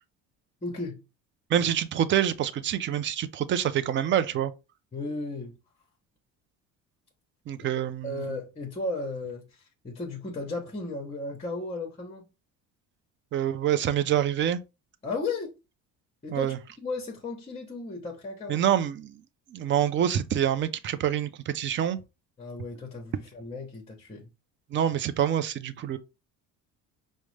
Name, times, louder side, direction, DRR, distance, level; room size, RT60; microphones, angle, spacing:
voice 1, 0.6-1.0 4.9-5.5 8.0-12.3 15.0-15.5 16.2-18.6 22.4-24.3, left 3 dB, 20° left, 0.8 m, -35 dB
voice 2, 1.5-4.5 7.5-8.2 13.3-14.6 16.3-16.6 18.5-19.2 19.5-22.0 24.7-26.0, right 10 dB, 35° right, 0.4 m, -26 dB
4.9 x 2.1 x 3.2 m
cardioid pair, 130°, 33 cm